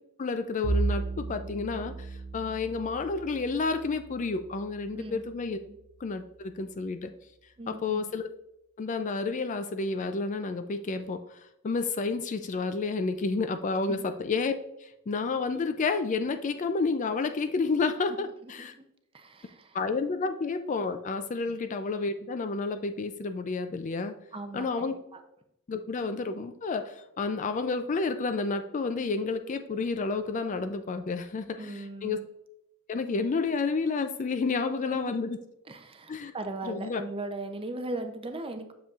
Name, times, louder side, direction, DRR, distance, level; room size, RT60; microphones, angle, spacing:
voice 1, 0.2-2.1 2.3-5.6 6.0-7.1 7.7-8.3 8.8-14.6 14.8-18.7 19.7-24.1 24.5-25.0 25.7-32.2 32.9-35.4 36.1-36.3 36.6-37.0, left 4 dB, 35° left, 9 dB, 0.4 m, -30 dB
Bowed string instrument, 0.6-5.2, right 3 dB, 80° right, 0.6 m, -34 dB
voice 2, 7.6-8.1 13.9-14.0 18.4-18.8 19.1-19.8 21.5-21.6 24.3-25.2 31.5-32.2 34.9-35.1 35.7-38.7, right 2 dB, 25° right, 7 dB, 0.6 m, -39 dB
7.8 x 6.9 x 2.4 m, 0.81 s
head